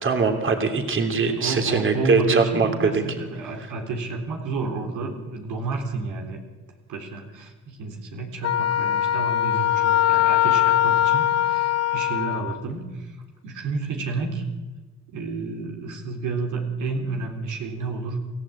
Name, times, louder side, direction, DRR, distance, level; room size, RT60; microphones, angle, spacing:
voice 1, 0.0-3.0, right 4 dB, 40° right, 5 dB, 3.2 m, -22 dB
voice 2, 1.1-6.4 6.9-13.2 13.4-14.4 15.1-18.2, right 3 dB, 85° right, 2 dB, 3.7 m, -31 dB
Wind instrument woodwind instrument, 8.4-12.6, left 12 dB, 55° left, 0.8 m, -21 dB
27.5 x 15.0 x 8.6 m, 1.2 s
cardioid pair, 90°, 30 cm